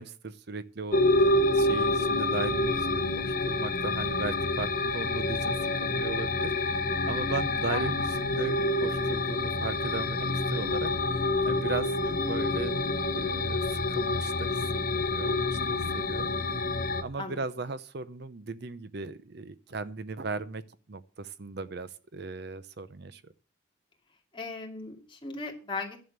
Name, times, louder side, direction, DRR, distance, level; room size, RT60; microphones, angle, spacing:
voice 1, 0.0-6.5 7.1-10.9 11.5-12.8 13.1-16.3 17.0-20.6 20.9-23.2, right 3 dB, 55° right, 14 dB, 0.6 m, -37 dB
sound 1, 0.9-17.0, left 2 dB, 45° left, 1.0 m, -28 dB
voice 2, 11.9-12.2 17.2-17.4 24.3-26.0, left 3 dB, 25° left, 1 dB, 2.6 m, -37 dB
11.0 x 7.1 x 7.9 m, 0.37 s
head